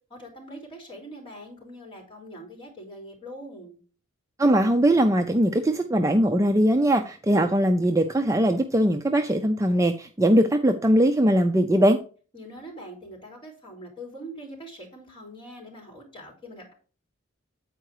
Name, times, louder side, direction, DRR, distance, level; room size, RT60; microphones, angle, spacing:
voice 1, 0.1-3.8 12.3-16.7, equal, 25° left, 3.6 m, -43 dB
voice 2, 4.4-12.0, right 1 dB, 15° right, 0.4 m, -21 dB
8.9 x 4.6 x 4.8 m
head